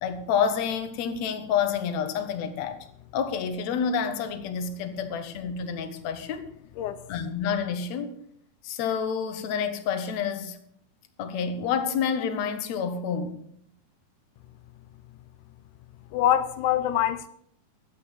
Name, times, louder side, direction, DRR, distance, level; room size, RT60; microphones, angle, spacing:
voice 1, 0.0-2.8 3.1-6.5 7.1-8.1 8.6-10.6 11.2-13.4, left 7 dB, 70° left, 2.3 m, -28 dB
voice 2, 16.1-17.3, left 11 dB, 85° left, 2.2 m, -24 dB
11.5 x 8.5 x 6.7 m
omnidirectional pair, 3.5 m